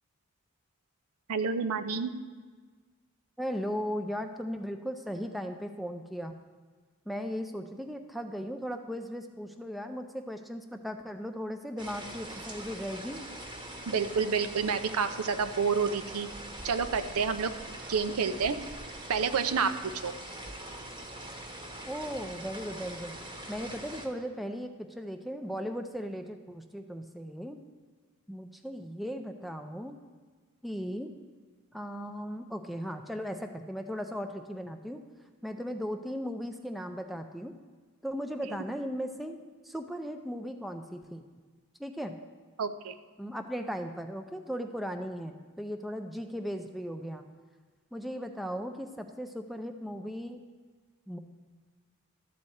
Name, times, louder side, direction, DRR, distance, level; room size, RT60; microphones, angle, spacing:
voice 1, 1.3-2.1 13.9-16.3 16.6-17.5 17.9-18.6 19.1-19.7 20.0-20.1 42.6-42.9, right 5 dB, 85° right, 9 dB, 0.6 m, -29 dB
voice 2, 3.4-6.4 7.1-13.3 21.9-23.2 23.5-27.6 28.3-30.0 30.6-31.1 31.7-35.0 35.4-37.5 38.0-39.4 39.6-41.3 41.8-42.2 43.2-47.2 47.9-50.4 51.1-51.2, equal, ahead, 5 dB, 0.4 m, -37 dB
sound 1, 11.8-24.1, right 1 dB, 20° right, 0.9 m, -43 dB
12.5 x 4.3 x 7.8 m, 1.5 s
head